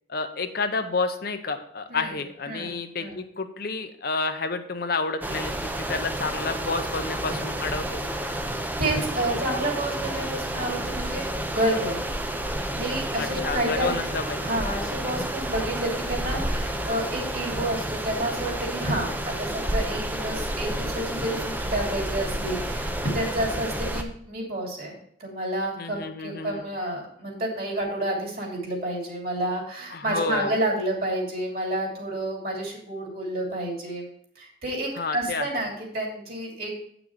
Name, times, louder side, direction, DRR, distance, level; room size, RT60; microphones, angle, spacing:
voice 1, 0.1-5.5 5.9-8.0 13.2-14.6 25.8-26.6 29.9-30.5 35.0-35.4, left 3 dB, 50° left, 7 dB, 0.7 m, -30 dB
sound 1, 5.2-24.0, right 1 dB, 10° right, 0.6 m, -30 dB
voice 2, 8.8-12.0 12.7-14.1 14.4-34.1 34.4-36.7, right 1 dB, 50° right, -1 dB, 2.8 m, -30 dB
9.2 x 6.0 x 4.7 m, 0.66 s
head